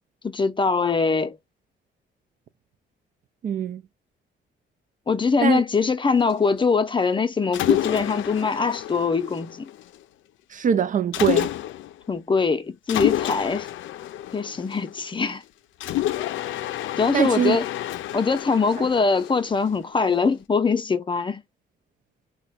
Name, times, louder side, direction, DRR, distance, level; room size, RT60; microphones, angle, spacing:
voice 1, 0.2-1.4 5.1-9.7 12.1-13.7 14.3-15.4 17.0-17.6 18.1-21.4, left 4 dB, 25° left, 0.6 m, -22 dB
voice 2, 3.4-3.8 5.4-5.6 10.5-11.5 17.1-17.6, right 8 dB, 40° right, 0.4 m, -22 dB
Mechanisms, 7.5-10.0 11.1-12.0 12.9-15.2 15.8-20.0, left 13 dB, 75° left, 0.4 m, -29 dB
2.9 x 2.2 x 4.1 m
cardioid pair, 90°, 20 cm